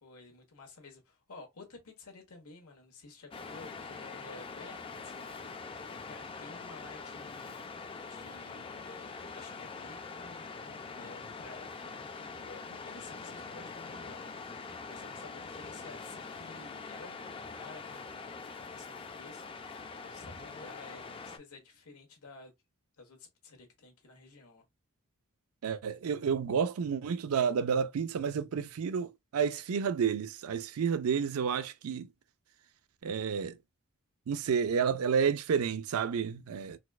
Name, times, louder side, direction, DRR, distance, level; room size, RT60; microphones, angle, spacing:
voice 1, 0.0-7.6 8.1-22.5 23.0-24.6, left 3 dB, 80° left, 1.2 m, -53 dB
Waves surf, 3.3-21.4, left 4 dB, 25° left, 0.3 m, -44 dB
voice 2, 25.6-32.1 33.0-33.6 34.3-36.8, right 6 dB, 70° right, 0.4 m, -30 dB
4.1 x 2.3 x 2.3 m
head